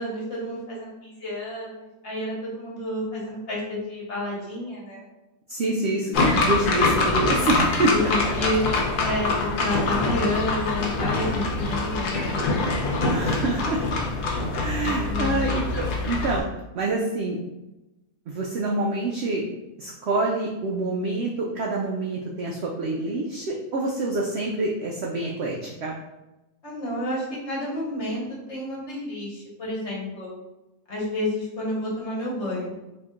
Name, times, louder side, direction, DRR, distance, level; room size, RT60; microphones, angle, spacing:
voice 1, 0.0-5.1 7.8-8.6 9.0-12.7 14.8-15.5 26.6-30.3 30.9-32.7, left 1 dB, 50° left, -4 dB, 1.2 m, -30 dB
voice 2, 5.5-7.9 13.1-13.8 14.5-16.4 16.7-17.4 18.3-19.4 19.8-26.0, right 2 dB, 80° right, -2 dB, 0.5 m, -26 dB
sound 1, 6.1-16.4, left 2 dB, 80° left, 1.2 m, -24 dB
4.3 x 2.9 x 2.4 m, 0.99 s
omnidirectional pair, 1.7 m